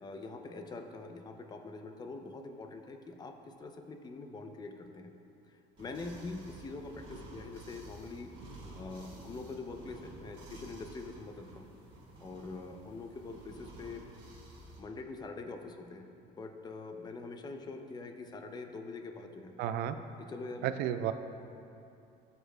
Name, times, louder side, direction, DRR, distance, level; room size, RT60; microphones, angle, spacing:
voice 1, 0.0-5.1 5.8-8.3 8.7-11.7 12.2-14.1 14.8-19.5 20.2-20.7, left 3 dB, 25° left, 5 dB, 0.5 m, -44 dB
sound 1, 5.8-14.8, right 1 dB, 30° right, 2.1 m, -51 dB
voice 2, 19.6-20.0 20.6-21.1, right 10 dB, 70° right, 10 dB, 0.4 m, -32 dB
15.5 x 6.7 x 2.2 m, 2.7 s
cardioid pair, 145°, 17 cm